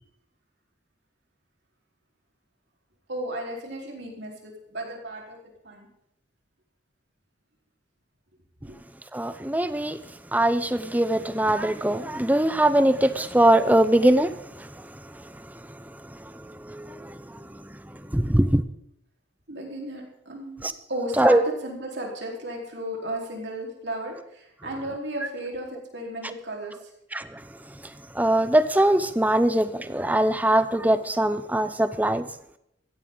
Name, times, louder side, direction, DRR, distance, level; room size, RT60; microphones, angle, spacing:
voice 1, 3.1-5.4 5.6-5.9 8.7-8.8 19.5-26.8, right 1 dB, 60° right, 4.2 m, -34 dB
voice 2, 9.1-10.0 10.3-18.6 20.6-20.7 21.2-21.4 27.1-27.4 28.1-32.3, right 1 dB, 10° right, 0.6 m, -22 dB
16.5 x 15.0 x 3.9 m
head